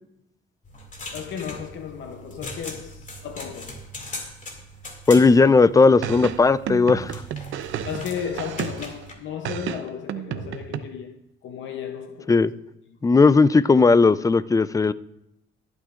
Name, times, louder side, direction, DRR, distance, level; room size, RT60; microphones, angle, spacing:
sound 1, 0.6-9.1, left 1 dB, 40° left, 2.3 m, -40 dB
voice 1, 1.1-3.9 7.8-12.5, left 8 dB, 70° left, 0.8 m, -34 dB
voice 2, 5.1-7.2 12.3-12.5 13.0-14.9, left 4 dB, 15° left, 0.4 m, -16 dB
sound 2, 6.0-9.0 9.4-10.8, right 10 dB, 80° right, 0.7 m, -32 dB
23.5 x 8.9 x 2.5 m
cardioid pair, 90°, 20 cm